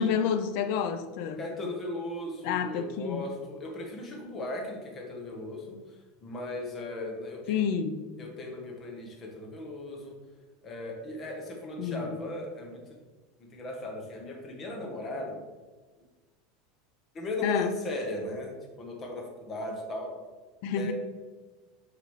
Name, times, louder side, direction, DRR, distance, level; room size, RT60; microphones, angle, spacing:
voice 1, 0.0-1.4 2.4-3.3 7.5-8.0 11.8-12.2 17.4-17.7 20.6-20.9, left 7 dB, 60° left, 9 dB, 0.6 m, -29 dB
voice 2, 1.4-7.6 8.2-10.1 10.6-13.0 13.4-15.5 17.1-20.2 20.8-20.9, left 2 dB, 25° left, 0 dB, 1.4 m, -37 dB
9.4 x 4.0 x 3.3 m, 1.3 s
supercardioid pair, 155°, 0 cm